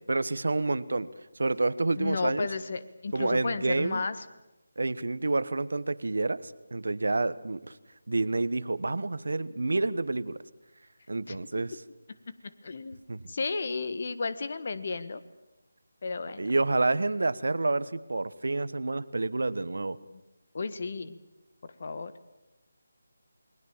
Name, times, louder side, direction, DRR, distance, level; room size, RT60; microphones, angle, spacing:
voice 1, 0.1-1.1 1.4-2.5 3.1-4.0 4.8-7.8 8.1-10.4 11.1-11.8 13.1-13.3 16.4-20.0, right 2 dB, 70° right, 16 dB, 1.1 m, -28 dB
voice 2, 2.0-4.2 11.3-11.4 12.3-12.4 12.6-13.0 13.3-15.2 16.0-16.5 20.5-21.2 21.6-22.1, left 4 dB, 50° left, 13 dB, 1.5 m, -33 dB
29.0 x 20.5 x 7.3 m, 0.99 s
figure-of-eight pair, 160°, 0 cm